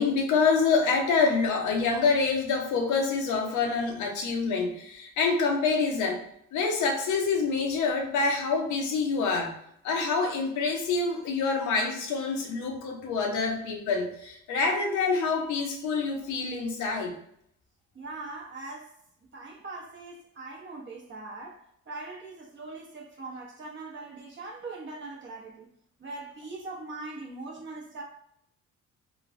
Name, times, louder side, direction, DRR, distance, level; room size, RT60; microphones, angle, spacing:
voice 1, 0.0-6.2 6.5-9.5 9.8-17.1, left 4 dB, 85° left, 0.7 m, -26 dB
voice 2, 17.9-18.9 19.3-25.7 26.0-28.0, right 3 dB, 40° right, 0.8 m, -41 dB
3.0 x 2.2 x 2.6 m
cardioid pair, 90°, 30 cm